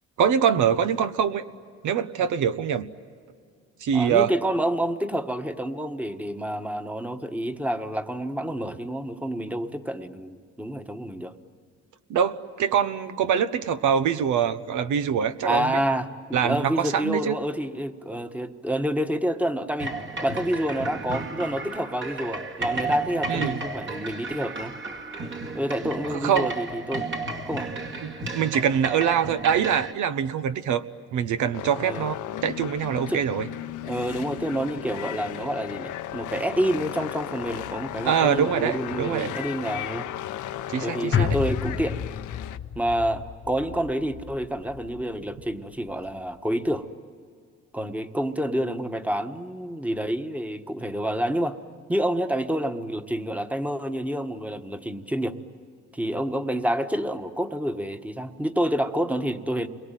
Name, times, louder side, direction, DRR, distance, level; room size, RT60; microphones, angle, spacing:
voice 1, 0.2-1.4 1.8-2.9 3.8-4.3 12.1-15.8 16.3-17.4 23.3-23.6 26.1-26.5 28.0-30.8 31.1-32.1 32.4-33.5 38.0-39.3 40.7-41.4, right 8 dB, 80° right, 11 dB, 1.1 m, -24 dB
voice 2, 3.9-11.3 15.4-24.7 25.5-27.1 27.4-27.7 31.8-32.1 33.1-33.2 33.9-40.1 40.8-42.0 42.7-46.9 47.7-51.6 51.9-55.4 55.9-59.7, equal, 5° right, 8 dB, 1.4 m, -28 dB
sound 1, 19.8-29.9, right 3 dB, 40° right, 2.2 m, -33 dB
sound 2, 31.5-42.6, left 12 dB, 80° left, 0.9 m, -36 dB
sound 3, 41.1-45.6 45.9-46.0, left 8 dB, 45° left, 1.1 m, -30 dB
29.0 x 22.5 x 9.2 m, 2.2 s
cardioid pair, 90°, 30 cm